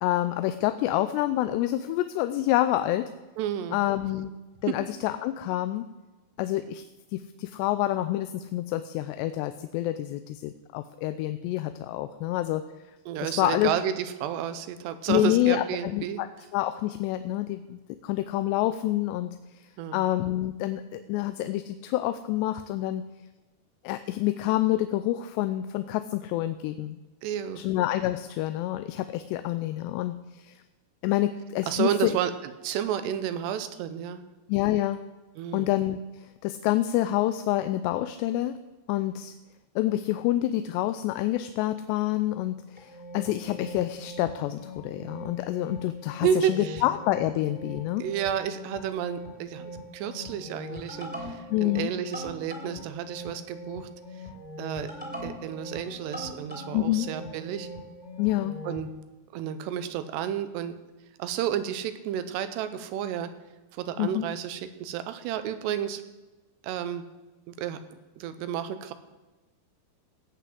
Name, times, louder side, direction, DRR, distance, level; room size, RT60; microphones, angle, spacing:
voice 1, 0.0-3.1 3.7-4.3 4.6-5.8 6.4-6.8 7.1-12.6 13.2-13.7 15.1-16.3 16.5-19.4 19.9-23.1 23.8-27.0 27.6-30.5 31.0-32.2 34.5-35.0 35.5-36.0 36.4-38.6 38.9-39.3 39.8-48.0 51.5-51.9 56.7-57.1 58.2-58.6 64.0-64.3, left 14 dB, 85° left, 10 dB, 2.7 m, -27 dB
voice 2, 3.4-3.8 13.1-16.2 19.8-20.0 27.2-27.6 31.7-34.2 35.4-35.7 46.2-46.8 48.0-53.9 54.6-54.9 55.2-57.7 58.6-58.9 59.3-60.8 61.2-63.3 63.7-66.0 66.6-67.0 67.5-68.9, right 9 dB, 85° right, 11 dB, 3.0 m, -31 dB
sound 1, 42.8-58.9, equal, 5° right, 2.1 m, -41 dB
17.0 x 5.9 x 7.8 m, 1.1 s
omnidirectional pair, 4.8 m